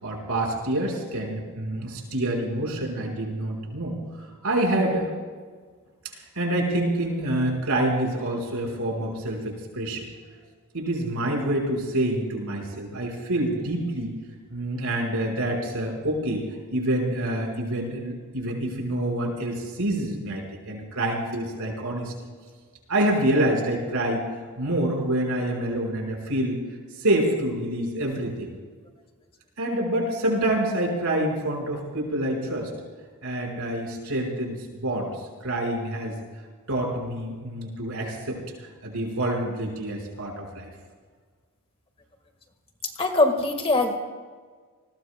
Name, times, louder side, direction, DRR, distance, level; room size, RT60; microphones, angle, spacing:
voice 1, 0.0-4.0 4.4-5.1 6.1-10.1 10.7-14.1 14.5-16.4 16.7-22.1 22.9-24.2 24.6-26.6 27.0-28.5 29.6-32.7 33.2-35.1 35.4-36.1 36.7-38.4 38.8-40.7, right 1 dB, 75° right, 0 dB, 5.1 m, -27 dB
voice 2, 43.0-44.0, left 2 dB, 25° left, 5 dB, 1.7 m, -22 dB
28.5 x 20.0 x 2.3 m, 1.5 s
head